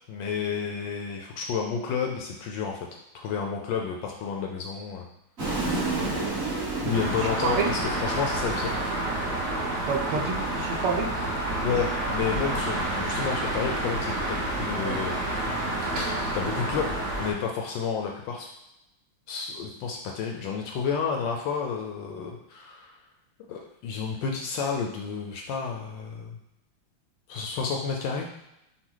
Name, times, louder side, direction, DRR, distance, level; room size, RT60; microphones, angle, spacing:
voice 1, 0.1-2.8 3.1-5.0 6.8-8.8 11.6-15.7 16.3-18.5 19.3-23.0 23.5-26.4 27.3-28.3, left 6 dB, 75° left, 1 dB, 1.1 m, -31 dB
sound 1, 5.4-9.7, right 2 dB, 35° right, 1.2 m, -32 dB
sound 2, 6.9-17.3, right 1 dB, 55° right, 0.8 m, -29 dB
voice 2, 7.2-7.7 9.9-11.1 14.6-16.3, right 5 dB, 85° right, 2 dB, 1.6 m, -31 dB
6.0 x 2.2 x 3.8 m, 0.87 s
omnidirectional pair, 2.3 m